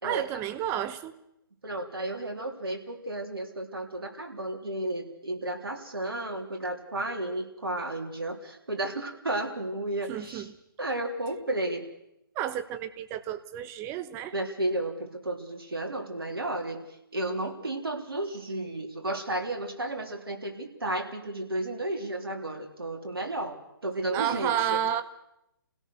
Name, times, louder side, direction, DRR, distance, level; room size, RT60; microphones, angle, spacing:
voice 1, 0.0-1.1 10.1-10.5 12.3-14.3 24.1-25.0, right 10 dB, 20° right, 12 dB, 1.1 m, -31 dB
voice 2, 1.6-10.5 10.8-11.9 14.3-16.8 17.1-24.8, right 1 dB, 80° right, 3 dB, 3.7 m, -33 dB
27.5 x 17.0 x 6.5 m, 0.84 s
figure-of-eight pair, 140°, 12 cm